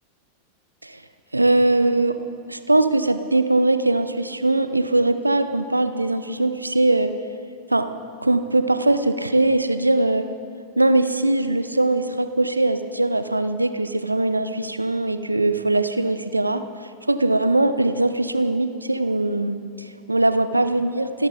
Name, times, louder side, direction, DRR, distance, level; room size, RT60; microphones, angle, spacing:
voice 1, 1.3-2.2 2.5-7.1 7.7-7.9 8.2-10.3 10.8-16.6 17.1-21.3, right 2 dB, 85° right, 10 dB, 0.8 m, -21 dB
28.5 x 12.5 x 4.0 m, 2.3 s
figure-of-eight pair, 90°, 0 cm